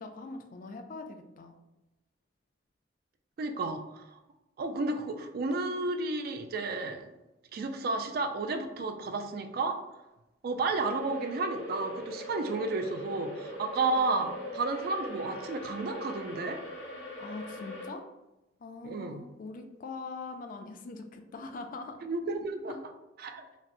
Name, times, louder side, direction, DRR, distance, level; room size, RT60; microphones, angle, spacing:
voice 1, 0.0-1.6 13.8-14.3 17.2-18.0 18.6-22.0 22.7-22.8, left 3 dB, 50° left, 6 dB, 0.3 m, -42 dB
voice 2, 3.4-4.2 4.6-7.1 7.5-9.8 10.4-16.6 18.8-19.2 22.0-22.8 23.2-23.4, right 3 dB, 55° right, 6 dB, 0.3 m, -32 dB
sound 1, 10.8-17.9, equal, 80° left, 0.8 m, -41 dB
4.1 x 2.0 x 2.5 m, 0.98 s
head